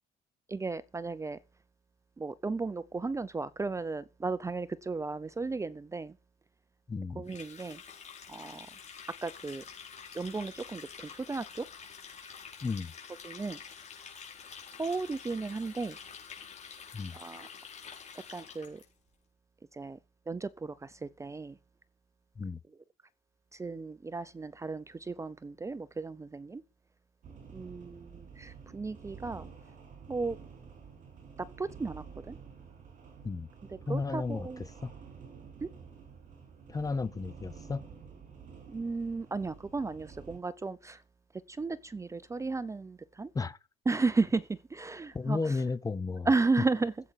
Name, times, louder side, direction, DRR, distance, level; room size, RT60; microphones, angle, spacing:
voice 1, 0.5-1.4 2.2-6.2 7.2-7.8 8.3-8.7 9.2-9.6 10.1-11.7 12.2-12.3 13.2-13.6 14.8-16.0 17.1-17.5 18.1-18.8 19.7-20.0 20.3-21.6 23.5-26.6 27.5-29.5 30.1-30.4 31.4-32.4 33.9-34.7 35.6-35.7 38.7-41.0 41.3-43.3 43.9-45.6 46.3-46.9, right 3 dB, 15° right, 0.6 m, -34 dB
voice 2, 6.9-7.3 12.6-12.9 16.9-17.2 22.4-22.6 33.2-33.5 33.9-34.5 34.8-34.9 36.7-37.8 43.3-43.6 45.1-46.3, left 4 dB, 20° left, 0.7 m, -33 dB
Water tap faucet, 7.2-18.8, left 6 dB, 45° left, 5.2 m, -48 dB
sound 1, 27.2-40.4, right 6 dB, 50° right, 7.3 m, -50 dB
15.5 x 8.0 x 5.8 m
cardioid pair, 110°, 17 cm